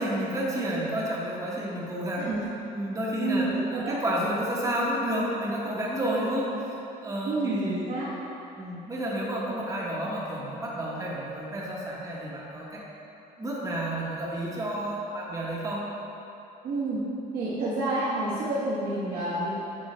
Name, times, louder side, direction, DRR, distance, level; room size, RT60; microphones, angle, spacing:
voice 1, 0.0-2.3 2.7-7.8 8.6-12.8 13.4-15.8, right 1 dB, 20° right, -5 dB, 1.1 m, -30 dB
voice 2, 3.2-4.0 7.2-8.1 16.6-17.0 17.3-19.5, right 2 dB, 60° right, -10 dB, 1.3 m, -29 dB
8.3 x 3.1 x 4.3 m, 2.8 s
cardioid pair, 110°, 17 cm